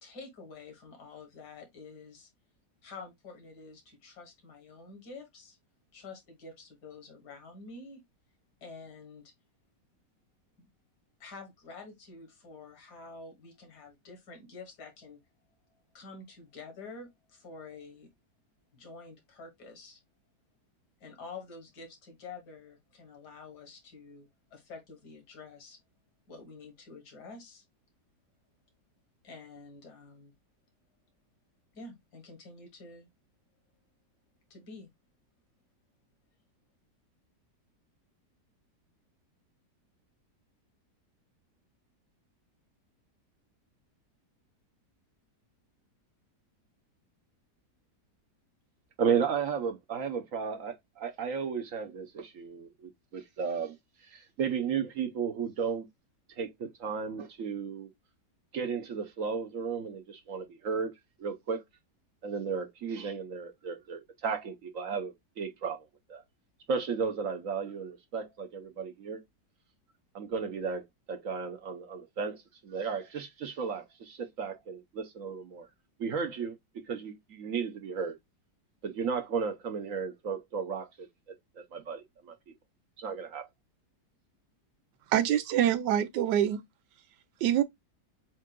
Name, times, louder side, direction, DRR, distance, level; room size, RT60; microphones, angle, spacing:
voice 1, 0.0-2.3 2.8-5.6 5.9-8.0 8.6-9.2 10.6-10.7 11.2-15.2 15.9-18.1 18.7-20.0 21.0-25.8 26.3-27.6 29.2-30.3 31.7-33.1 34.5-34.9, left 4 dB, 75° left, 2.0 m, -48 dB
voice 2, 49.0-53.8 54.1-55.9 56.4-57.9 58.5-60.9 61.2-61.6 62.2-65.8 66.1-66.2 66.7-69.2 70.1-75.7 76.0-76.6 76.9-78.1 78.8-81.1 81.6-82.3 83.0-83.5, right 6 dB, 60° right, 1.0 m, -34 dB
voice 3, 85.1-86.6 87.4-87.6, right 11 dB, 85° right, 1.3 m, -25 dB
7.3 x 2.5 x 2.2 m
omnidirectional pair, 1.8 m